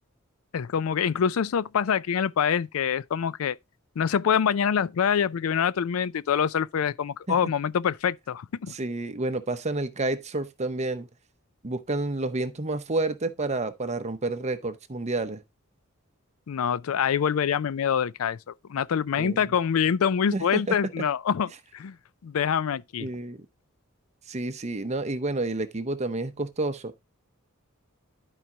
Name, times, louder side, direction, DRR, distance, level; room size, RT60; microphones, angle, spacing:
voice 1, 0.5-3.6 4.0-8.7 16.5-22.0 22.2-23.1, left 7 dB, 75° left, 0.4 m, -25 dB
voice 2, 8.7-11.1 11.6-15.4 19.1-19.4 20.3-20.8 23.0-23.4 24.3-26.9, right 2 dB, 30° right, 0.8 m, -29 dB
12.0 x 4.8 x 2.8 m
head